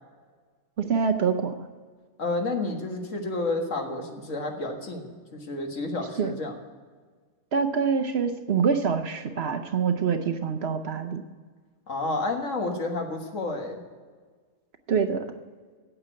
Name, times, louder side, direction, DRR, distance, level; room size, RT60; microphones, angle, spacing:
voice 1, 0.8-1.5 6.2-6.3 7.5-11.2 14.9-15.2, right 6 dB, 55° right, 6 dB, 0.9 m, -25 dB
voice 2, 2.2-6.6 11.9-13.8, left 2 dB, 65° left, 3 dB, 1.9 m, -30 dB
8.9 x 8.1 x 9.0 m, 1.6 s
omnidirectional pair, 1.4 m